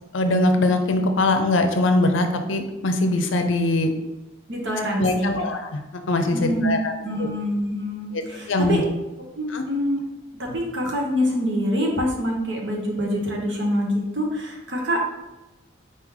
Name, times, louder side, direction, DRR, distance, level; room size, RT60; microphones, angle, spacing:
voice 1, 0.1-3.9 5.0-5.8 6.1-6.9 7.2-7.3 8.1-8.2 8.5-8.8 9.5-9.6, left 2 dB, 75° left, 6 dB, 0.5 m, -21 dB
voice 2, 4.5-5.4 6.3-8.8 9.4-10.0 10.4-15.0, equal, 65° right, -1 dB, 1.1 m, -25 dB
4.2 x 3.7 x 3.0 m, 1.0 s
head